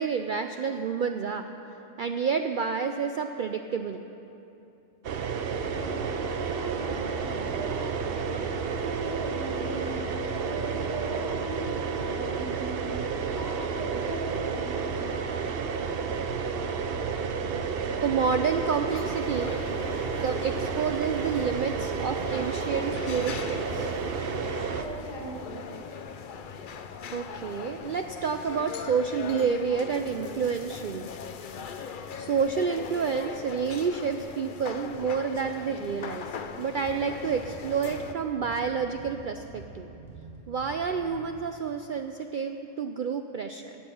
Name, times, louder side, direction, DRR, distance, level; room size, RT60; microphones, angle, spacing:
voice 1, 0.0-1.5 2.0-4.0 13.9-14.1 18.0-19.6 20.2-23.9 27.1-31.1 32.2-36.3 36.6-39.9 40.5-43.8, right 6 dB, 70° right, 6 dB, 0.4 m, -29 dB
sound 1, 5.0-24.8, right 5 dB, 55° right, 0.8 m, -31 dB
voice 2, 5.6-8.4 8.8-13.0 13.3-15.1 24.8-25.7, right 2 dB, 30° right, -8 dB, 2.9 m, -38 dB
sound 2, 18.9-38.1, left 6 dB, 50° left, 0.6 m, -40 dB
sound 3, 36.8-41.3, right 3 dB, ahead, 3.6 m, -47 dB
18.0 x 7.2 x 7.0 m, 2.9 s
omnidirectional pair, 1.4 m